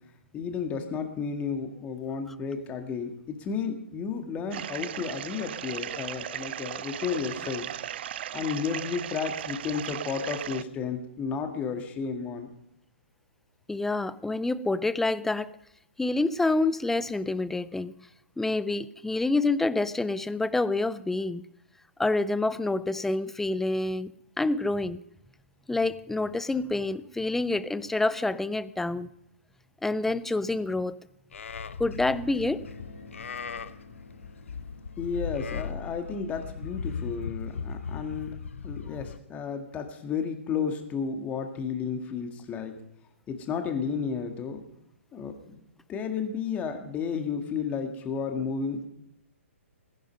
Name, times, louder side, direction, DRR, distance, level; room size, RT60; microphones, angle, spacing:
voice 1, 0.3-7.7 8.3-12.5 35.0-38.4 38.6-42.8 43.3-44.6 45.1-45.6 45.9-48.8, left 6 dB, 20° left, 1.9 m, -32 dB
sound 1, 4.5-10.6, right 11 dB, 50° right, 0.5 m, -37 dB
voice 2, 13.7-15.5 16.0-18.1 18.4-21.4 22.0-24.1 24.4-25.0 25.7-29.1 29.8-31.0 31.8-32.6, left 2 dB, 5° left, 0.4 m, -27 dB
Livestock farm animals working animals, 31.3-39.2, left 6 dB, 70° left, 0.8 m, -38 dB
sound 2, 32.5-37.4, left 2 dB, 85° left, 3.2 m, -51 dB
18.5 x 10.5 x 5.3 m
figure-of-eight pair, 125°, 7 cm